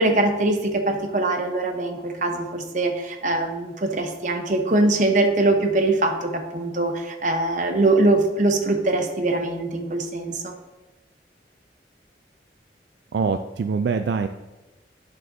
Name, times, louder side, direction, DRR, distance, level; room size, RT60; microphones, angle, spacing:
voice 1, 0.0-10.5, right 2 dB, 45° right, 5 dB, 0.8 m, -22 dB
voice 2, 13.1-14.3, right 5 dB, 70° right, 8 dB, 0.3 m, -24 dB
11.0 x 5.4 x 2.7 m, 1.1 s
head